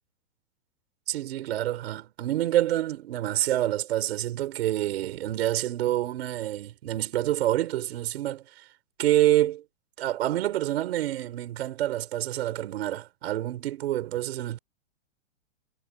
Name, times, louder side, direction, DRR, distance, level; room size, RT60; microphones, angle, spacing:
voice 1, 1.1-8.6 9.0-9.6 10.0-14.6, right 13 dB, 50° right, 4.9 m, -27 dB
hypercardioid pair, 170°, 39 cm